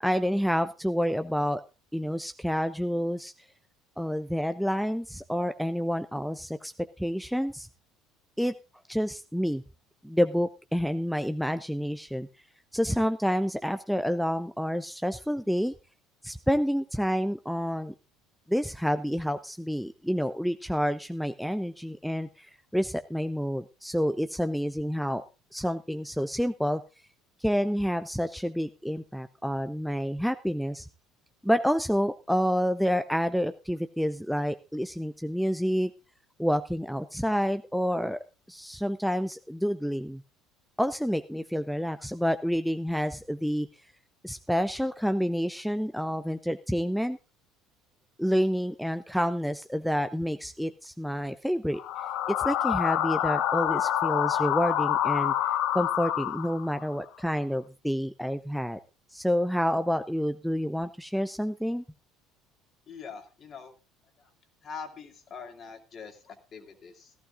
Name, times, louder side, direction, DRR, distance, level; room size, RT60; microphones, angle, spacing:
voice 1, 0.0-1.6 1.9-3.3 4.0-6.7 7.0-7.7 8.4-8.5 8.9-9.6 10.0-12.3 12.7-15.7 16.2-17.9 18.5-25.2 25.5-26.8 27.4-30.9 31.4-35.9 36.4-40.2 40.8-43.7 44.2-47.2 48.2-51.8 52.3-55.3 55.7-58.8 59.1-61.8, equal, ahead, 10 dB, 0.6 m, -28 dB
sound 1, 51.7-56.8, left 11 dB, 55° left, 0.8 m, -27 dB
voice 2, 62.9-63.7 64.2-64.3 64.6-67.1, left 6 dB, 40° left, 5 dB, 2.4 m, -43 dB
16.5 x 14.5 x 2.5 m, 0.29 s
figure-of-eight pair, 60°, 0 cm